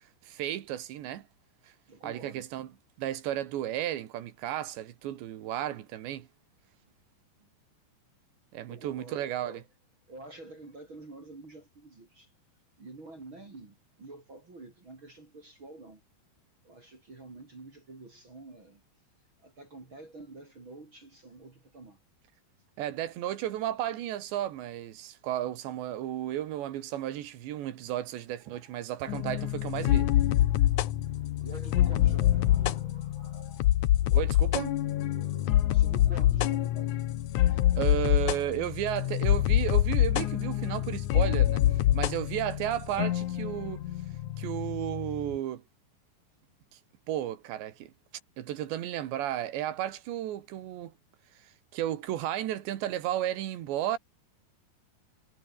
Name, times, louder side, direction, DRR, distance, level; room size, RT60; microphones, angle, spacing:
voice 1, 0.3-1.3 2.0-2.7 3.0-6.3 8.5-9.6 22.8-30.1 34.1-34.8 37.8-43.8 44.4-45.6 47.1-47.9 48.4-50.9 51.4-54.0, right 12 dB, 80° right, 4.0 m, -33 dB
voice 2, 1.9-2.4 7.4-7.5 8.7-9.6 10.1-12.3 12.8-16.0 16.6-18.8 19.4-22.0 28.5-28.8 30.1-30.2 30.8-34.6 35.0-37.0 40.4-40.7 44.4-44.5, right 2 dB, 30° right, 4.6 m, -49 dB
sound 1, 29.1-45.4, left 13 dB, 75° left, 1.8 m, -26 dB
omnidirectional pair, 5.0 m